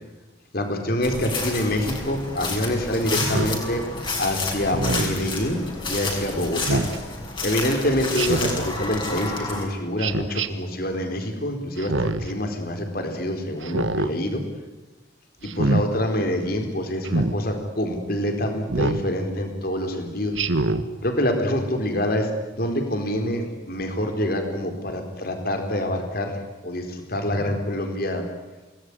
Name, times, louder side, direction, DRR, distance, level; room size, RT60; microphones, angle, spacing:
voice 1, 0.5-3.8 4.2-6.8 7.4-14.4 15.4-20.4 21.0-28.3, left 1 dB, 50° left, 5 dB, 4.5 m, -26 dB
sound 1, 1.0-9.6, left 3 dB, 25° left, 6.0 m, -30 dB
Speech synthesizer, 3.3-3.6 4.7-5.2 6.6-7.0 8.2-8.7 10.0-10.5 11.8-12.3 13.6-14.1 15.4-15.8 17.0-17.4 18.7-19.0 20.3-20.8, right 2 dB, 80° right, 1.6 m, -24 dB
28.0 x 20.0 x 9.9 m, 1.2 s
head